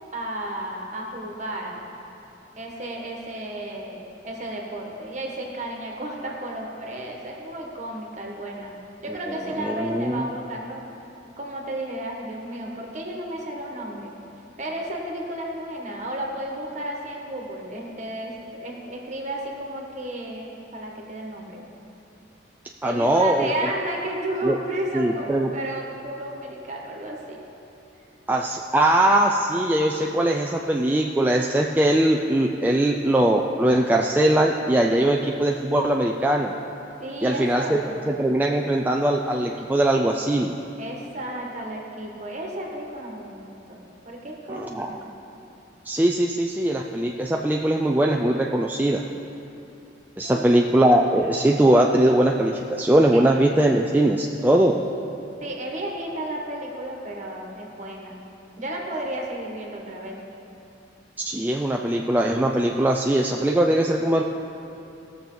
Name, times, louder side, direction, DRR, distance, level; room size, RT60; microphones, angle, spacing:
voice 1, 0.1-1.8 2.6-4.0 4.2-8.7 9.0-10.8 11.4-14.1 14.6-21.6 22.8-25.3 25.5-27.4 37.0-38.1 40.8-45.1 50.2-50.6 53.1-53.3 55.4-58.2 58.6-60.2, right 1 dB, 40° right, -1 dB, 1.5 m, -33 dB
voice 2, 9.5-10.2 22.8-23.5 24.4-24.6 24.9-25.5 28.3-36.5 37.2-37.8 38.1-40.6 44.5-44.9 45.9-49.0 50.2-54.8 61.3-64.2, right 1 dB, 10° right, 0 dB, 0.3 m, -21 dB
18.0 x 6.8 x 3.9 m, 2.9 s
head